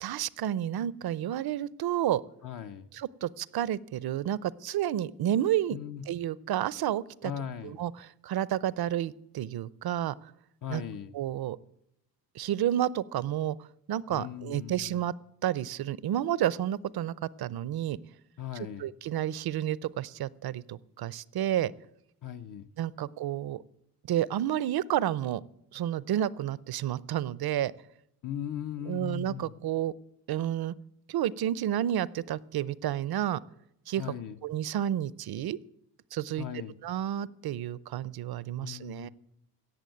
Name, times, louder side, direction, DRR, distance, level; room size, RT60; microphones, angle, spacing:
voice 1, 0.0-2.2 2.9-5.8 6.1-7.3 7.6-10.1 10.7-10.8 11.1-11.6 12.3-13.6 13.9-15.1 15.4-18.0 18.5-21.7 22.8-23.6 24.0-25.4 25.7-27.7 28.9-29.9 30.3-30.7 31.1-33.4 33.9-34.1 34.4-35.6 36.1-36.5 36.8-39.1, right 11 dB, 65° right, 21 dB, 0.6 m, -30 dB
voice 2, 2.4-2.9 5.7-6.0 7.2-7.8 10.6-11.2 14.1-15.0 18.4-18.9 22.2-22.7 28.2-29.5 34.0-34.4 36.4-36.7 38.6-39.1, left 9 dB, 55° left, 7 dB, 0.8 m, -38 dB
17.0 x 7.1 x 9.1 m, 0.80 s
wide cardioid pair, 150°, 40 cm